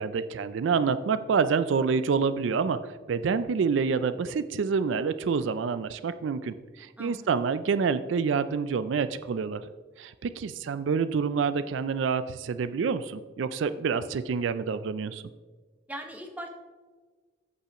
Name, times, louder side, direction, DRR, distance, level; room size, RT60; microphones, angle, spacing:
voice 1, 0.0-9.6 10.0-15.2, right 5 dB, 75° right, 13 dB, 0.4 m, -27 dB
voice 2, 7.0-7.3 15.9-16.5, right 1 dB, 10° right, 3 dB, 0.9 m, -39 dB
14.5 x 5.6 x 3.0 m, 1.4 s
head